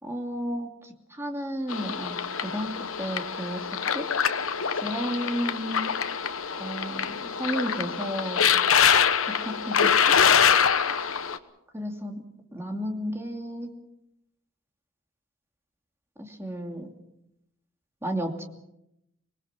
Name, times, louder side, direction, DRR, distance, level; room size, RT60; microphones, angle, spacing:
voice 1, 0.0-3.7 3.9-4.1 4.7-6.0 6.5-8.5 9.2-9.9 11.7-12.2 12.5-13.7 16.2-16.9 18.0-18.4, equal, 10° right, 3 dB, 2.6 m, -33 dB
sound 1, 1.7-11.4, left 7 dB, 70° left, 1.1 m, -24 dB
26.0 x 20.5 x 6.0 m, 0.83 s
head